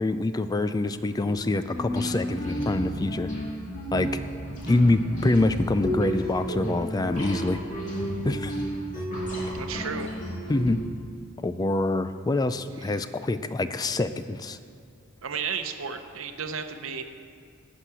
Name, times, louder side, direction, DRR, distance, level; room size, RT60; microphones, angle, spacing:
voice 1, 0.0-3.3 3.9-4.1 4.7-7.6 8.2-8.6 9.0-9.1 10.5-10.8 11.4-14.6, left 2 dB, 20° left, 11 dB, 0.3 m, -25 dB
sound 1, 1.1-10.7, equal, 40° left, 2.5 m, -32 dB
voice 2, 9.5-10.1 12.8-13.0 15.2-17.0, right 6 dB, 75° right, 8 dB, 0.8 m, -33 dB
11.5 x 6.1 x 8.1 m, 2.2 s
head